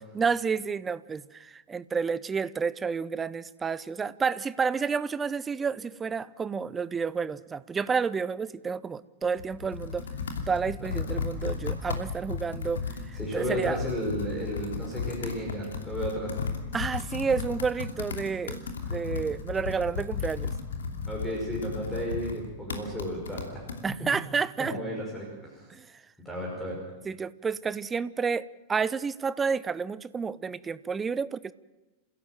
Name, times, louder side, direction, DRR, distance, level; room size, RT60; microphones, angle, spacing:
voice 1, 0.1-10.1 10.5-13.8 16.7-18.6 18.9-20.5 23.8-24.8 25.7-26.0 27.0-31.5, right 5 dB, 15° right, 18 dB, 0.7 m, -30 dB
Computer keyboard, 9.2-23.8, left 5 dB, 65° left, 2.8 m, -35 dB
voice 2, 13.2-16.4 21.1-23.7 24.6-25.7 26.2-26.8, equal, 5° left, -2 dB, 5.8 m, -33 dB
28.0 x 16.0 x 7.6 m, 1.1 s
figure-of-eight pair, 90°, 0 cm